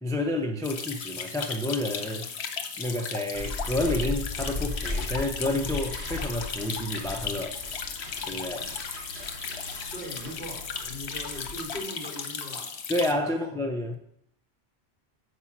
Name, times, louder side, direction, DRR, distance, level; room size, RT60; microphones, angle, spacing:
voice 1, 0.0-2.3 2.8-7.6 8.3-8.7 12.9-14.0, left 1 dB, 5° left, 0.4 m, -29 dB
sound 1, 0.6-13.1, left 6 dB, 75° left, 1.1 m, -36 dB
sound 2, 3.3-11.8, left 2 dB, 70° right, 3.3 m, -37 dB
voice 2, 9.9-12.7 13.2-13.5, equal, 50° right, 3.3 m, -40 dB
7.4 x 4.7 x 5.8 m
omnidirectional pair, 1.1 m